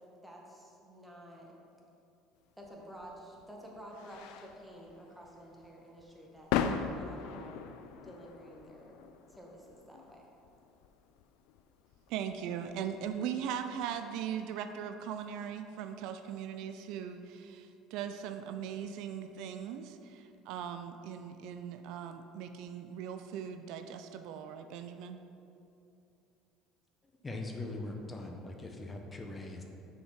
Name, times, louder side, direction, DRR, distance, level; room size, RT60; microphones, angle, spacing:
voice 1, 0.0-1.5 2.6-7.7 8.0-9.0 9.3-10.3, equal, 5° right, -2 dB, 1.3 m, -51 dB
sound 1, 2.6-13.9, left 7 dB, 75° left, 0.3 m, -40 dB
voice 2, 12.1-25.2, right 8 dB, 70° right, 8 dB, 0.3 m, -39 dB
voice 3, 27.2-29.6, left 2 dB, 25° left, 2 dB, 0.7 m, -41 dB
5.8 x 4.4 x 4.7 m, 2.7 s
supercardioid pair, 90°, 0 cm